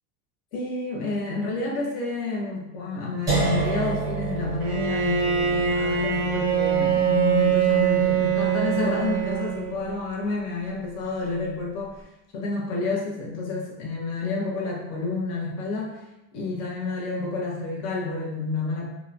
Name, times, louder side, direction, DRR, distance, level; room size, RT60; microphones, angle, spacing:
voice 1, 0.5-12.0 12.3-16.0 16.3-18.9, left 3 dB, 40° left, -2 dB, 0.7 m, -29 dB
sound 1, 3.3-9.2, right 3 dB, 10° right, 0.6 m, -31 dB
Bowed string instrument, 4.6-10.0, right 8 dB, 50° right, 0.5 m, -23 dB
2.8 x 2.1 x 2.5 m, 0.92 s
supercardioid pair, 160°, 44 cm